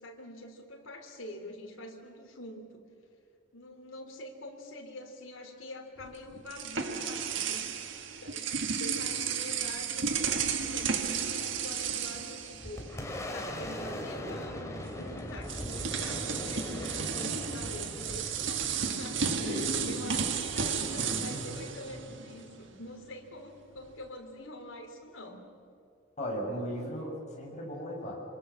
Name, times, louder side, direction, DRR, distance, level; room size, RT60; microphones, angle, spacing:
voice 1, 0.0-2.8 3.5-7.9 8.2-12.9 13.3-25.4, left 1 dB, 85° left, 1 dB, 3.4 m, -46 dB
sound 1, 6.0-13.3 13.5-13.7 14.9-15.0 15.4-22.6, right 6 dB, 65° right, 1.7 m, -33 dB
Boom, 12.2-21.5, left 1 dB, 15° left, 2.9 m, -41 dB
voice 2, 19.4-19.9 20.9-21.6 26.2-28.2, equal, 35° left, -2 dB, 7.0 m, -37 dB
27.5 x 25.5 x 7.2 m, 2.5 s
head